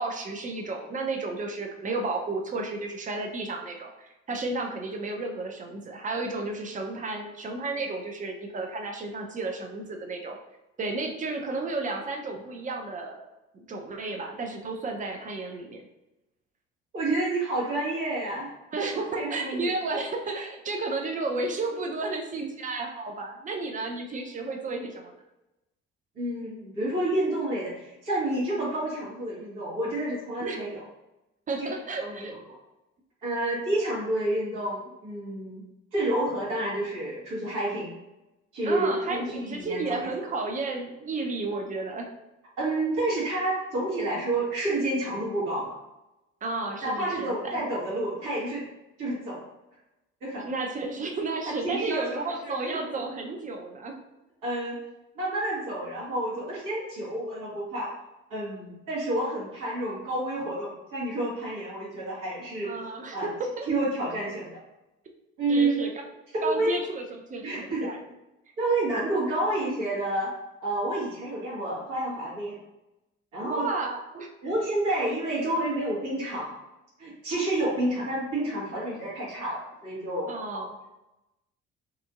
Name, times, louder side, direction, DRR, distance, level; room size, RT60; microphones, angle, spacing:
voice 1, 0.0-10.4 10.8-13.2 13.5-15.8 18.7-25.1 30.4-30.7 31.5-32.3 38.6-42.1 46.4-47.7 50.4-54.0 62.6-63.7 65.5-65.9 66.4-68.0 73.4-74.3 80.3-80.7, right 3 dB, 20° right, 3 dB, 0.5 m, -32 dB
voice 2, 16.9-18.5 18.9-19.7 26.1-30.8 31.6-32.4 33.2-35.6 35.9-37.9 38.5-40.1 42.6-45.8 46.8-48.6 49.0-49.4 50.2-50.5 51.5-53.0 54.4-54.8 55.1-57.9 58.3-62.7 63.1-63.3 63.7-64.6 65.4-65.9 66.3-66.7 67.4-67.9 68.6-70.3 70.6-72.6 73.3-73.7 74.4-76.5 77.0-80.6, right 1 dB, 55° right, -7 dB, 1.3 m, -29 dB
2.8 x 2.5 x 2.4 m, 0.95 s
figure-of-eight pair, 45°, 36 cm